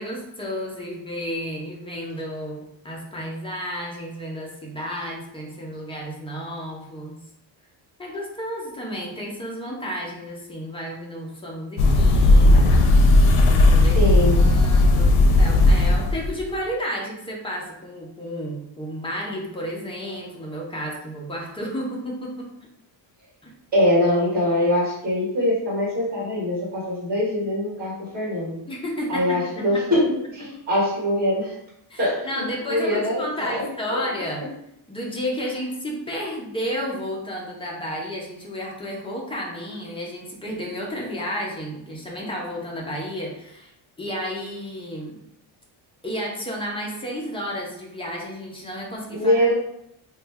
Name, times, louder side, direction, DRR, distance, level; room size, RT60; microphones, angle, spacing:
voice 1, 0.0-7.2 8.0-12.7 13.7-14.0 14.4-22.5 23.4-23.5 28.7-29.7 31.9-34.4 34.9-43.7 44.0-45.2 46.0-49.4, equal, 15° left, -3 dB, 0.3 m, -32 dB
sound 1, 11.8-16.4, left 2 dB, 75° left, 0.6 m, -15 dB
voice 2, 13.8-14.5 23.7-28.6 29.1-31.5 32.0-34.0 49.1-49.5, left 1 dB, 20° right, -7 dB, 1.5 m, -23 dB
3.0 x 2.2 x 3.3 m, 0.78 s
cardioid pair, 165°, 49 cm